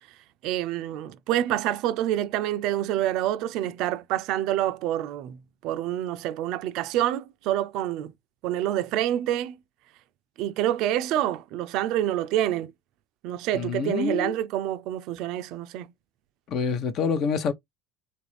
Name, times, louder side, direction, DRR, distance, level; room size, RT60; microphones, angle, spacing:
voice 1, 0.4-8.1 8.4-9.6 10.4-12.7 13.2-15.9, right 12 dB, 65° right, 0.3 m, -27 dB
voice 2, 13.5-14.3 16.5-17.5, left 5 dB, 50° left, 0.7 m, -26 dB
3.1 x 2.5 x 3.2 m
hypercardioid pair, 90°, 0 cm